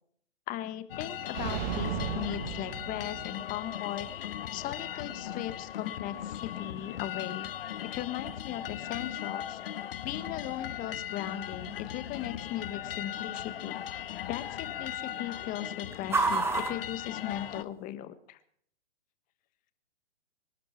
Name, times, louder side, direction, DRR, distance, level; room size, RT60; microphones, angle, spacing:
voice 1, 0.5-4.1 4.5-13.8 14.3-18.4, left 12 dB, 25° left, 12 dB, 1.3 m, -38 dB
sound 1, 0.9-17.6, left 11 dB, 55° left, 1.0 m, -38 dB
sound 2, 1.3-3.5, right 8 dB, 40° right, 2.2 m, -35 dB
sound 3, 3.1-17.9, right 3 dB, 5° right, 1.4 m, -40 dB
25.0 x 12.0 x 4.5 m, 0.63 s
figure-of-eight pair, 120°, 35 cm